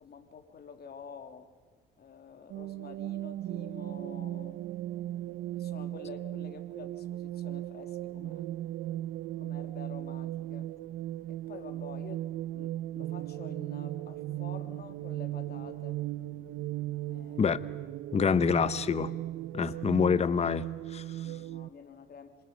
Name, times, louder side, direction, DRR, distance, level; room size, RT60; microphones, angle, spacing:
voice 1, 0.0-1.5 2.0-4.7 5.5-8.5 9.4-10.7 11.3-12.3 12.5-16.0 17.1-17.5 19.6-19.7 21.2-22.4, left 6 dB, 50° left, 6 dB, 2.9 m, -49 dB
sound 1, 2.5-21.7, right 14 dB, 80° right, 0.7 m, -37 dB
voice 2, 18.1-19.1 19.5-21.0, left 6 dB, 35° left, 15 dB, 0.8 m, -26 dB
27.5 x 26.5 x 5.3 m, 1.5 s
cardioid pair, 90°, 20 cm